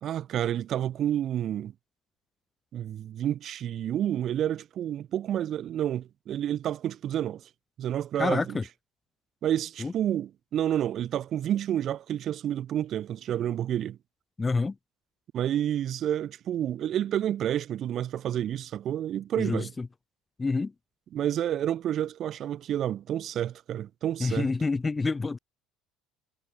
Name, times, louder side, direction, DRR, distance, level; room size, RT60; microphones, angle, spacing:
voice 1, 0.0-1.7 2.7-7.4 7.8-8.6 9.4-14.0 15.3-19.7 21.1-24.5, right 11 dB, 50° right, 1.6 m, -29 dB
voice 2, 8.2-8.6 9.8-9.9 14.4-14.7 19.4-19.9 20.4-20.7 24.2-25.4, left 3 dB, 20° left, 0.4 m, -27 dB
hypercardioid pair, 75°, 0 cm